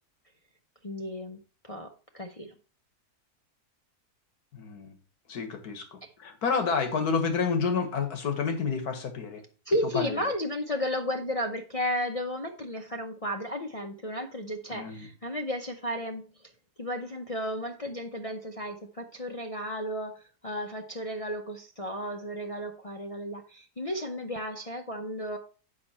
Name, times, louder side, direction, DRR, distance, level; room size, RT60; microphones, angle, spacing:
voice 1, 0.8-1.4 1.6-2.5 6.0-6.1 9.7-16.5 16.8-25.4, equal, 35° left, 2 dB, 0.5 m, -33 dB
voice 2, 4.5-4.9 5.3-9.4 9.9-10.2 14.7-15.1, left 5 dB, 85° left, 6 dB, 1.9 m, -29 dB
8.4 x 5.8 x 4.3 m, 0.37 s
omnidirectional pair, 1.6 m